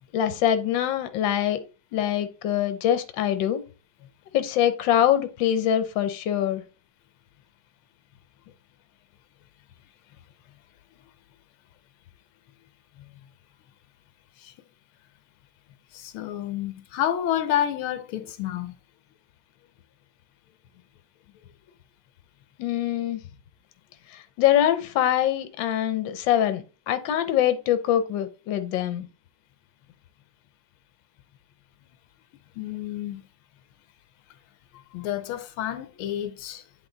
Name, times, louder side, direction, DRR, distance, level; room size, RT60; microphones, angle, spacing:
voice 1, 0.1-1.6 1.9-3.6 4.3-6.6 22.6-23.2 24.4-29.1, left 11 dB, 70° left, 1.5 m, -24 dB
voice 2, 15.9-18.8 32.6-33.2 34.9-36.6, left 11 dB, 85° left, 1.5 m, -29 dB
8.3 x 3.8 x 3.9 m
omnidirectional pair, 2.3 m